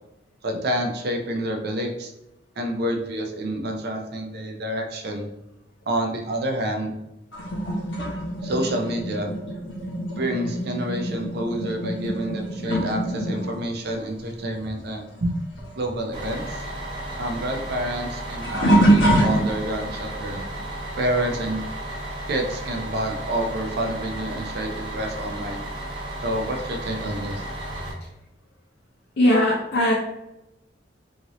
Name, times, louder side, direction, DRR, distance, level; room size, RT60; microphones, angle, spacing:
voice 1, 0.4-2.1 2.6-5.3 5.9-6.9 8.4-9.3 10.1-15.4 15.8-16.6 17.2-20.4 21.0-21.6 22.3-25.6 26.2-27.4, right 1 dB, 60° right, 3 dB, 0.5 m, -28 dB
sound 1, 7.3-15.3 15.6-19.9 20.5-20.9 23.1-23.2 24.1-24.2, right 1 dB, 80° left, 1.0 m, -25 dB
Bus, 16.1-27.9, right 1 dB, 25° right, 1.0 m, -34 dB
voice 2, 29.2-29.9, left 1 dB, 60° left, -3 dB, 0.5 m, -19 dB
2.9 x 2.6 x 2.9 m, 0.91 s
head